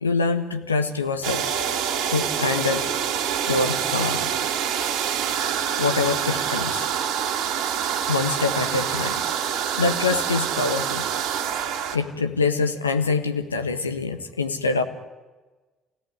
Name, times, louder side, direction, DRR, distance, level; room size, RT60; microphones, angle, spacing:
voice 1, 0.0-1.5 2.1-2.8 3.5-4.3 5.8-6.9 8.1-9.3 9.7-11.1 11.9-14.8, left 4 dB, 85° left, 7 dB, 1.5 m, -25 dB
sound 1, 1.2-12.0, right 8 dB, 60° right, 2.2 m, -26 dB
28.0 x 18.0 x 9.7 m, 1.3 s
figure-of-eight pair, 50°, 0 cm